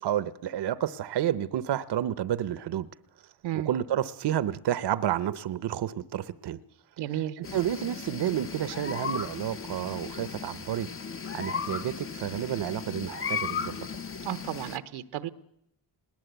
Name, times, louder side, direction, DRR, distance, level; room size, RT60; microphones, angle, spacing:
voice 1, 0.0-2.9 3.5-6.6 7.4-10.9 11.3-13.8, right 11 dB, 65° right, 15 dB, 0.8 m, -30 dB
voice 2, 7.0-7.4 14.2-15.3, right 12 dB, 90° right, 12 dB, 1.0 m, -33 dB
sound 1, 7.4-14.8, left 6 dB, 30° left, 0.8 m, -36 dB
20.5 x 18.0 x 8.1 m, 0.79 s
cardioid pair, 70°, 44 cm